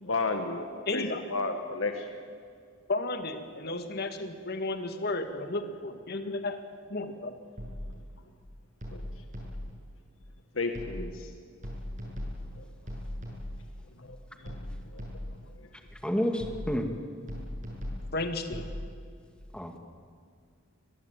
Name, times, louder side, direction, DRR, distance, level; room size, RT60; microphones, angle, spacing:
voice 1, 0.0-1.0 1.3-2.1 3.7-3.8 8.9-9.0 10.6-11.3 14.0-14.2 14.4-14.5 14.9-15.0, left 3 dB, 75° left, 6 dB, 1.6 m, -32 dB
voice 2, 0.9-1.2 2.9-6.6 6.9-7.3 18.1-18.6, left 2 dB, 50° left, 8 dB, 2.0 m, -33 dB
sound 1, 7.6-8.1 8.8-9.9 10.7-11.3 11.6-13.8 14.5-15.5 16.4-16.9 17.3-18.8, equal, 40° right, 7.5 m, -39 dB
voice 3, 15.9-16.9 19.5-19.8, equal, 5° left, 5 dB, 2.1 m, -30 dB
24.0 x 20.5 x 9.1 m, 2.2 s
head